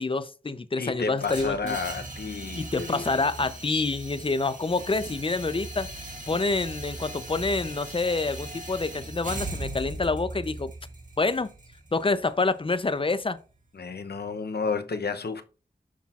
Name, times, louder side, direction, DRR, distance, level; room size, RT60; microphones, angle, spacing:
voice 1, 0.0-1.8 2.5-5.9 6.3-10.7 11.2-11.5 11.9-13.4, left 3 dB, 30° left, 0.5 m, -27 dB
voice 2, 0.8-3.1 13.7-15.4, left 4 dB, 70° left, 0.7 m, -31 dB
sound 1, 1.2-13.2, right 2 dB, 45° right, 1.8 m, -39 dB
8.3 x 5.7 x 2.4 m
wide cardioid pair, 50°, 18 cm